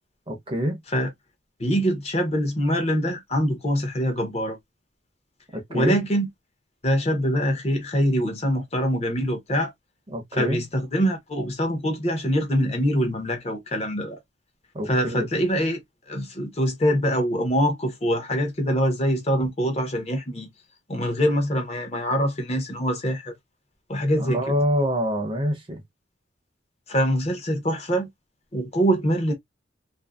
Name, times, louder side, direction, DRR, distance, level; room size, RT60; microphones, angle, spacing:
voice 1, 0.3-0.8 5.5-6.0 10.1-10.6 14.7-15.3 24.2-25.8, equal, 30° right, 0.6 m, -26 dB
voice 2, 1.6-4.6 5.7-6.3 6.8-9.7 10.3-14.2 14.9-15.8 16.1-20.5 20.9-23.3 23.9-24.6 26.9-28.1 28.5-29.3, equal, 35° left, 0.8 m, -24 dB
2.6 x 2.6 x 2.3 m
head